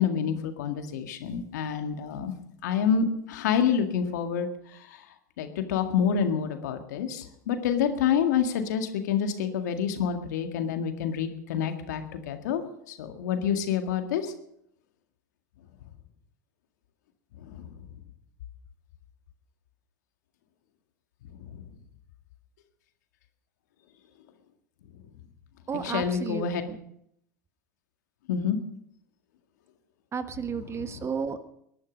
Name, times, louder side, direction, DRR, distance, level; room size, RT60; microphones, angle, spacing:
voice 1, 0.0-2.3 2.6-4.5 4.9-5.0 5.4-12.6 12.9-14.3 17.5-17.7 21.4-21.6 25.8-26.6 28.3-28.6, left 7 dB, 70° left, 6 dB, 1.9 m, -27 dB
voice 2, 25.7-26.8 30.1-31.5, right 6 dB, 30° right, 10 dB, 1.4 m, -33 dB
20.5 x 11.0 x 5.3 m, 0.73 s
hypercardioid pair, 85°, 10 cm